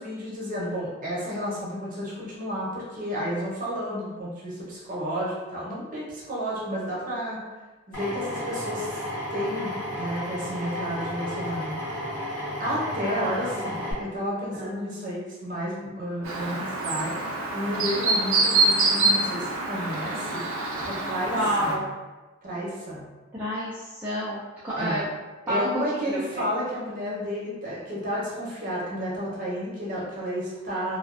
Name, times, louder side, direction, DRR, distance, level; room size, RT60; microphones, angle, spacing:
voice 1, 0.0-7.4 7.9-9.0 9.3-11.8 12.2-12.3 12.6-17.2 17.5-20.4 20.8-21.9 22.4-23.1 24.7-25.0 25.5-31.0, equal, 40° right, -6 dB, 0.7 m, -31 dB
Drill, 7.9-13.9, left 1 dB, 70° left, 1.3 m, -33 dB
voice 2, 13.0-14.8 21.3-21.9 23.3-25.1 25.5-25.7 26.1-26.5, equal, 10° right, -10 dB, 0.3 m, -30 dB
Chirp tweet, 16.2-21.8, right 2 dB, 90° right, 0.4 m, -25 dB
2.3 x 2.2 x 2.4 m, 1.2 s
head